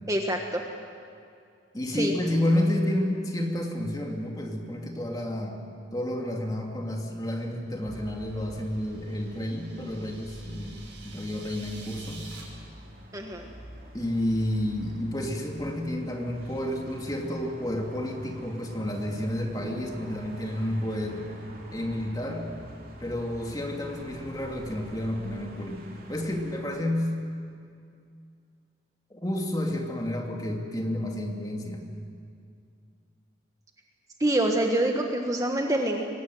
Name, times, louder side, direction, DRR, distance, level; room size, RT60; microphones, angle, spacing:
voice 1, 0.1-0.6 1.9-2.1 13.1-13.5 34.2-36.0, right 1 dB, 20° right, 2 dB, 1.4 m, -26 dB
voice 2, 1.7-5.6 5.9-10.7 11.0-12.3 13.9-21.3 21.7-22.5 23.0-27.1 29.1-31.9, left 1 dB, 20° left, 1 dB, 2.7 m, -30 dB
sound 1, 7.8-26.6, equal, 50° right, 3.5 m, -47 dB
sound 2, 8.3-12.4, right 4 dB, 75° right, 6.2 m, -49 dB
24.0 x 19.0 x 9.4 m, 2.4 s
head